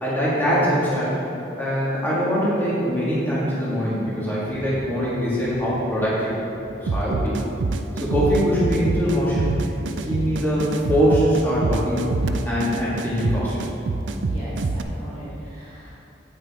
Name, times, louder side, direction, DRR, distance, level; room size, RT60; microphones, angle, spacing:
voice 1, 0.0-1.1 1.6-6.3 6.9-7.4 8.0-9.5 9.9-12.1 12.4-13.7, equal, 10° left, -9 dB, 2.2 m, -22 dB
voice 2, 4.4-4.9 14.1-16.0, right 1 dB, 35° left, -9 dB, 1.8 m, -38 dB
sound 1, 6.9-14.8, right 3 dB, 85° right, 0.4 m, -26 dB
9.1 x 8.8 x 3.7 m, 3.0 s
head